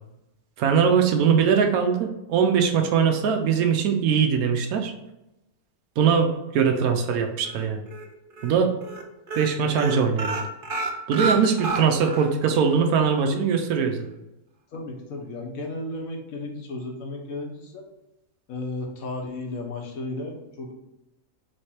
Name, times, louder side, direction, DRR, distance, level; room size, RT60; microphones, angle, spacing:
voice 1, 0.6-4.9 6.0-7.8 8.4-8.7 9.3-10.4 11.1-14.1, right 6 dB, 80° right, 4 dB, 1.0 m, -21 dB
sound 1, 7.4-8.0 8.4-8.6 8.8-9.0 9.3-12.3 12.6-12.7 13.1-13.2, right 3 dB, 50° right, 0.6 m, -29 dB
voice 2, 14.7-17.9 18.5-20.7, left 2 dB, 70° left, 1 dB, 1.4 m, -34 dB
3.9 x 3.3 x 4.2 m, 0.91 s
omnidirectional pair, 1.5 m